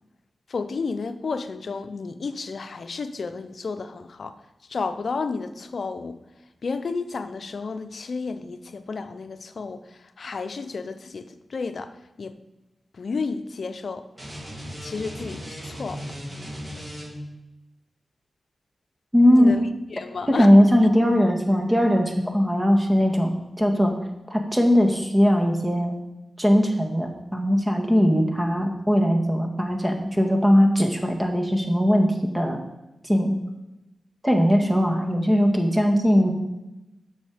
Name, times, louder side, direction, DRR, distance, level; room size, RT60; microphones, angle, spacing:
voice 1, 0.5-4.3 4.7-6.2 6.6-9.8 10.2-11.9 12.2-12.4 13.0-14.1 14.8-16.0 19.3-19.6 19.9-20.6, left 4 dB, 70° left, 10 dB, 0.6 m, -31 dB
sound 1, 14.2-17.4, equal, 30° right, 3.4 m, -37 dB
voice 2, 19.1-19.5 20.3-23.9 24.3-26.0 26.4-32.6 33.0-33.4 34.2-36.3, equal, 15° right, 3 dB, 1.8 m, -20 dB
8.3 x 6.4 x 5.0 m, 0.98 s
cardioid pair, 40°, 0 cm